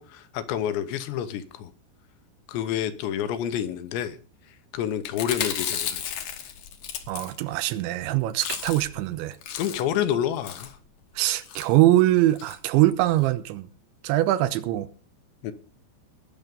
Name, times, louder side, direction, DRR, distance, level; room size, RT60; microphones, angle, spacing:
voice 1, 0.0-1.7 2.5-4.2 4.7-6.2 9.5-10.8 15.4-15.5, left 10 dB, 75° left, 3.1 m, -28 dB
Chewing mastication, 5.0-7.7 8.0-8.1 8.3-9.0 9.3-10.0 10.4-10.8 11.4-11.7 12.4-12.6 12.9-13.0 13.2-13.3, left 9 dB, 60° left, 2.3 m, -33 dB
voice 2, 7.1-9.4 11.2-13.7 14.0-14.9, right 15 dB, 80° right, 3.0 m, -22 dB
20.0 x 7.2 x 5.4 m
omnidirectional pair, 5.4 m